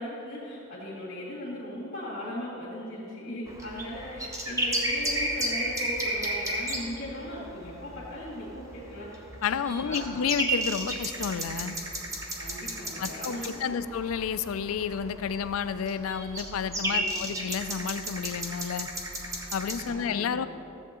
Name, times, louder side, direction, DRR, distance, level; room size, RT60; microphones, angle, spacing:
voice 1, 0.0-9.2 9.8-10.2 12.4-13.9 16.8-17.4 19.8-20.5, left 1 dB, 50° left, -9 dB, 2.2 m, -38 dB
sound 1, 3.5-19.9, right 1 dB, 15° right, 0.9 m, -33 dB
voice 2, 9.4-11.8 13.0-18.9 19.5-20.5, left 7 dB, 80° left, 13 dB, 0.4 m, -31 dB
13.5 x 7.8 x 3.7 m, 2.9 s
head